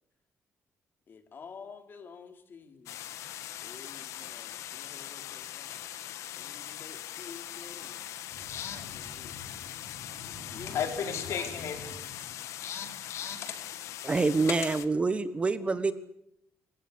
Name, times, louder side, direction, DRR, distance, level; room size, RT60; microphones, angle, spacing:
voice 1, 1.1-3.0 3.6-5.9 6.4-8.1 8.7-9.5 10.5-12.0 15.5-15.8, left 5 dB, 45° left, 3.6 m, -50 dB
sound 1, 2.9-14.9, left 12 dB, 90° left, 1.5 m, -41 dB
voice 2, 8.3-13.5, left 6 dB, 70° left, 4.9 m, -38 dB
voice 3, 14.0-15.9, right 3 dB, 25° right, 1.3 m, -26 dB
26.5 x 16.0 x 9.8 m
cardioid pair, 135°, 5 cm